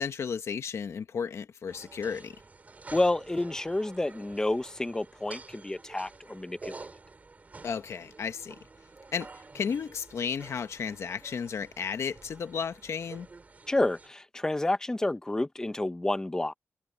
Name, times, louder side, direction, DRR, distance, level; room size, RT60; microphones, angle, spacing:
voice 1, 0.0-2.3 7.6-8.6 9.1-13.3, left 6 dB, 80° left, 1.2 m, -33 dB
sound 1, 1.7-14.1, right 3 dB, 35° right, 4.0 m, -49 dB
voice 2, 2.9-6.7 13.7-16.5, left 2 dB, 15° left, 0.8 m, -29 dB
wide cardioid pair, 140°, 5 cm